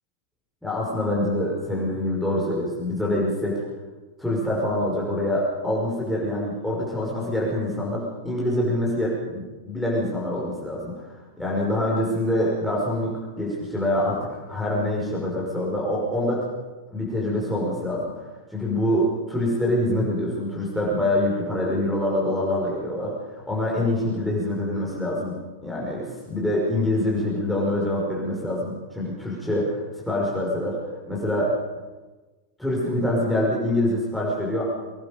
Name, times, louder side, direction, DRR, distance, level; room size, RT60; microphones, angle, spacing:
voice 1, 0.6-3.6 4.2-11.1 11.4-16.4 16.9-25.4 25.6-30.8 31.1-31.5 32.6-34.6, left 1 dB, ahead, -5 dB, 5.6 m, -25 dB
25.0 x 20.0 x 5.3 m, 1.2 s
figure-of-eight pair, 90°, 0 cm